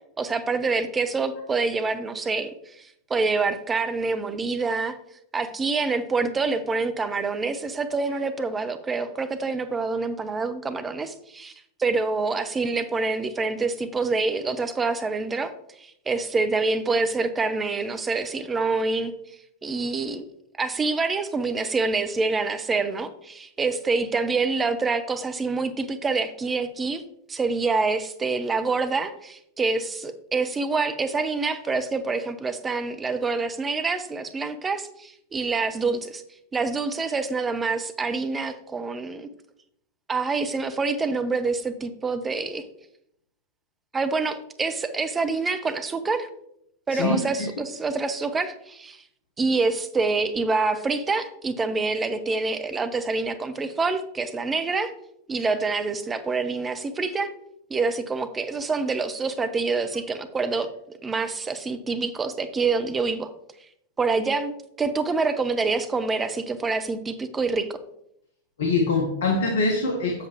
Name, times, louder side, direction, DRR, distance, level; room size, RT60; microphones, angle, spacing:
voice 1, 0.2-5.0 5.3-11.5 11.8-15.5 15.8-19.1 19.6-20.2 20.6-27.0 27.3-36.2 36.5-39.3 40.1-42.6 43.9-46.3 46.9-49.0 49.4-54.9 55.3-57.3 57.7-60.7 61.0-63.3 64.0-67.8, right 4 dB, 15° right, 9 dB, 0.6 m, -26 dB
voice 2, 46.9-47.5 68.6-70.2, left 3 dB, 60° left, 3 dB, 1.1 m, -24 dB
7.7 x 7.3 x 3.0 m, 0.76 s
figure-of-eight pair, 90°, 0 cm